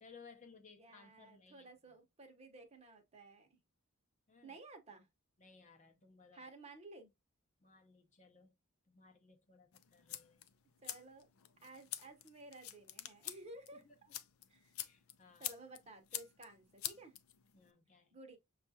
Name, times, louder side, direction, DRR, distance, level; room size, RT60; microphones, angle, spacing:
voice 1, 0.0-2.0 4.3-4.6 5.4-6.5 7.6-8.5 8.9-10.5 13.7-14.2 14.8-15.5 17.5-18.2, left 4 dB, 35° left, 0.7 m, -61 dB
voice 2, 0.8-3.6 4.4-5.1 6.3-7.1 10.8-11.3 11.6-13.8 14.5-14.7 15.4-17.1 18.1-18.4, right 2 dB, 30° right, 0.8 m, -55 dB
sound 1, 9.7-17.7, left 12 dB, 75° left, 0.5 m, -48 dB
6.4 x 2.4 x 2.7 m
head